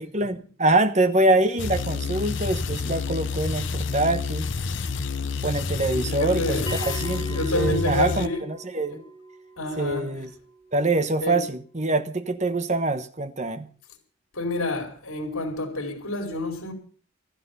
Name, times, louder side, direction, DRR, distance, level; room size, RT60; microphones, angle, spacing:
voice 1, 0.0-4.5 5.4-9.0 9.8-10.3 10.7-13.7, right 2 dB, 30° right, 1.2 m, -24 dB
sound 1, 1.6-8.3, left 4 dB, 55° left, 0.8 m, -29 dB
voice 2, 5.9-6.7 7.3-8.4 8.9-9.0 9.6-10.1 11.2-11.4 14.3-16.7, left 2 dB, 75° left, 5.0 m, -28 dB
Bell, 6.7-11.7, right 2 dB, 25° left, 2.0 m, -41 dB
15.0 x 13.5 x 5.5 m
head